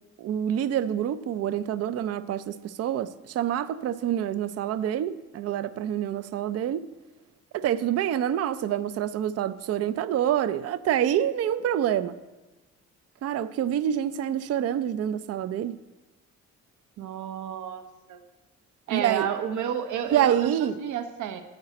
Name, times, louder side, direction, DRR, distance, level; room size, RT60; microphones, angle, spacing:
voice 1, 0.2-6.9 7.5-12.1 13.2-15.8 18.9-19.3 20.1-20.8, right 10 dB, 55° right, 0.4 m, -27 dB
voice 2, 17.0-18.2 18.9-21.4, right 8 dB, 75° right, 0.8 m, -31 dB
8.8 x 4.9 x 7.6 m
cardioid pair, 90°, 30 cm